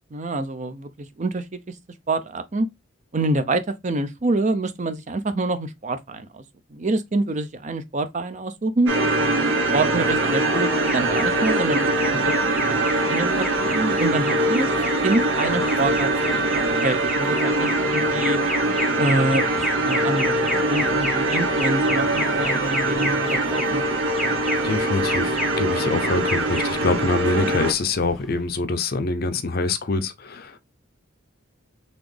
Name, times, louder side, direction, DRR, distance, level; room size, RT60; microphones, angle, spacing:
voice 1, 0.1-0.9 1.2-1.7 2.1-2.7 3.1-6.4 6.7-8.9 9.7-14.7 15.0-16.5 16.8-18.4 19.0-20.3 20.7-23.9, right 2 dB, 35° right, 0.5 m, -26 dB
sound 1, 8.9-27.7, right 2 dB, 70° right, 1.0 m, -23 dB
Alarm, 10.8-28.5, equal, ahead, 0.7 m, -31 dB
voice 2, 24.6-30.6, left 3 dB, 50° left, 0.6 m, -25 dB
4.1 x 3.5 x 3.3 m
head